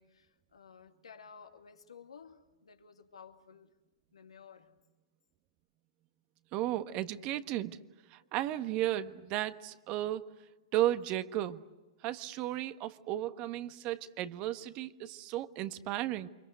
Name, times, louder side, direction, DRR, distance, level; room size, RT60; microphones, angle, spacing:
voice 1, 0.0-3.7 4.1-4.8 8.2-8.3, left 6 dB, 85° left, 2.5 m, -54 dB
voice 2, 6.5-7.8 8.1-10.3 10.7-11.6 12.0-16.3, right 13 dB, 40° right, 1.4 m, -34 dB
29.0 x 25.0 x 8.1 m
hypercardioid pair, 120°, 3 cm